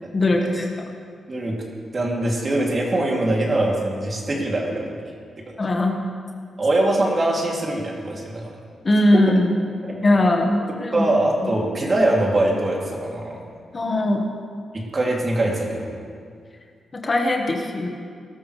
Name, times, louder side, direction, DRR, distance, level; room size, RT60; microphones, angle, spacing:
voice 1, 0.1-0.7 5.6-6.1 8.8-9.5 10.0-11.0 11.4-11.5 13.7-14.2 17.0-17.9, left 1 dB, 35° left, 2 dB, 1.6 m, -20 dB
voice 2, 1.9-4.9 6.6-8.5 9.1-9.2 9.8-10.0 10.9-13.4 14.7-15.9, right 1 dB, 40° right, -2 dB, 3.0 m, -22 dB
19.5 x 12.5 x 3.4 m, 2.1 s
cardioid pair, 75°, 0 cm